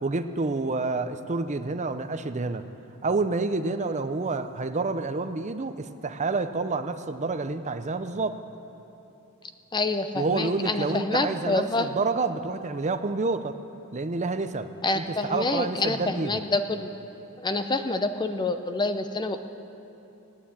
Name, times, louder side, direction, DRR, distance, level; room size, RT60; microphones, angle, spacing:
voice 1, 0.0-2.6 3.0-8.4 10.2-13.6 13.9-14.7 14.9-16.4, right 3 dB, 30° right, 9 dB, 0.6 m, -28 dB
voice 2, 9.7-11.9 14.8-16.9 17.4-19.4, left 2 dB, 20° left, 8 dB, 0.7 m, -27 dB
17.0 x 9.4 x 8.6 m, 3.0 s
head